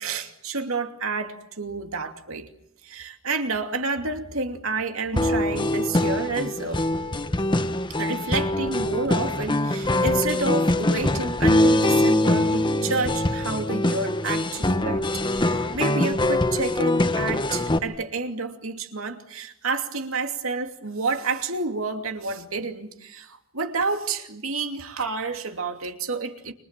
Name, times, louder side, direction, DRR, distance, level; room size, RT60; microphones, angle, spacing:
voice 1, 0.0-2.5 2.8-6.9 7.9-26.5, right 3 dB, 75° right, 2.7 m, -29 dB
sound 1, 5.2-17.8, left 1 dB, 20° left, 1.3 m, -23 dB
30.0 x 26.0 x 7.5 m
head